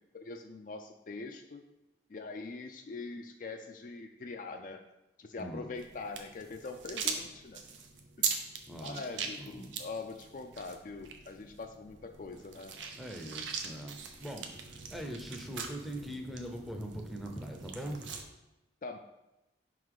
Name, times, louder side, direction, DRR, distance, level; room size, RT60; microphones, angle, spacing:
voice 1, 0.1-1.6 2.1-4.8 5.2-7.6 8.2-8.3 8.8-12.7 18.8-19.0, left 3 dB, 45° left, 5 dB, 0.4 m, -43 dB
voice 2, 5.4-5.7 8.7-9.0 9.4-9.7 12.9-18.1, right 1 dB, ahead, 1 dB, 0.6 m, -42 dB
sound 1, 5.8-18.2, right 6 dB, 85° right, 0.7 m, -41 dB
5.3 x 3.9 x 4.7 m, 0.97 s
head